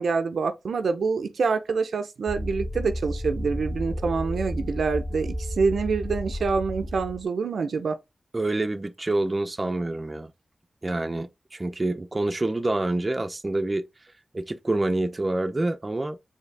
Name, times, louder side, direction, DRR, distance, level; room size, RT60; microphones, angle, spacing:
voice 1, 0.0-8.0, right 5 dB, 85° right, 0.5 m, -26 dB
sound 1, 2.3-7.2, equal, 30° left, 2.1 m, -32 dB
voice 2, 8.3-10.3 10.8-13.8 14.3-16.2, right 2 dB, 35° right, 0.5 m, -27 dB
4.6 x 2.7 x 3.3 m
cardioid pair, 55°, 0 cm